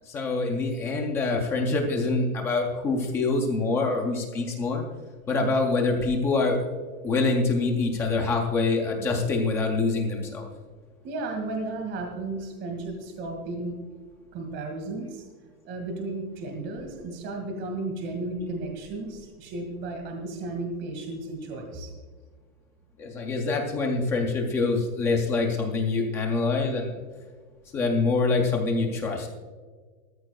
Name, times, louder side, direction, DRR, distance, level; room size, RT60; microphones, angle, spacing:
voice 1, 0.1-4.8 5.3-6.7 7.0-10.5 23.0-27.0 27.7-29.3, left 3 dB, 5° left, 1 dB, 0.3 m, -25 dB
voice 2, 11.0-13.8 14.3-15.2 15.7-21.9, right 2 dB, 25° right, 3 dB, 1.9 m, -34 dB
18.5 x 13.5 x 2.2 m, 1.5 s
supercardioid pair, 160°, 42 cm